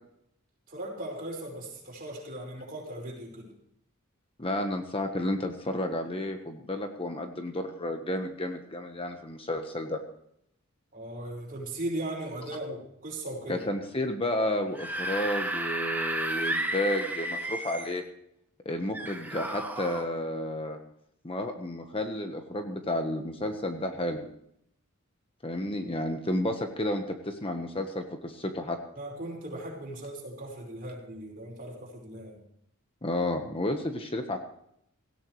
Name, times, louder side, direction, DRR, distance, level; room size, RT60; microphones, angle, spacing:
voice 1, 0.7-3.5 10.9-13.6 28.9-32.4, right 1 dB, 40° right, -1 dB, 5.3 m, -38 dB
voice 2, 4.4-10.0 13.5-18.0 18.6-20.8 21.2-24.3 25.4-28.8 33.0-34.4, left 1 dB, 25° left, 5 dB, 1.3 m, -31 dB
Screaming / Screech, 14.6-18.0 18.9-20.0, right 1 dB, 10° right, 1.5 m, -32 dB
18.0 x 16.5 x 3.2 m, 0.74 s
head